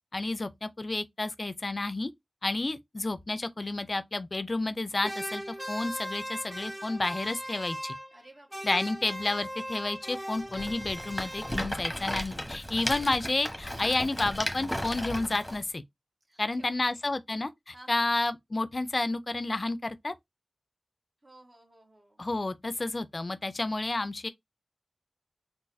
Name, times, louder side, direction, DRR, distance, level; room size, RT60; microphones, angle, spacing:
voice 1, 0.1-2.1 2.4-7.9 8.6-15.8 16.4-20.1 22.2-24.3, left 2 dB, 50° left, 0.4 m, -31 dB
sound 1, 5.0-8.3 8.5-11.9, equal, 15° right, 0.7 m, -39 dB
voice 2, 8.1-8.7 16.3-17.0 17.7-18.1 21.2-22.2, right 1 dB, 50° right, 1.6 m, -55 dB
Rattle, 10.5-15.6, equal, 5° left, 1.0 m, -35 dB
3.9 x 2.3 x 2.6 m
cardioid pair, 45°, 0 cm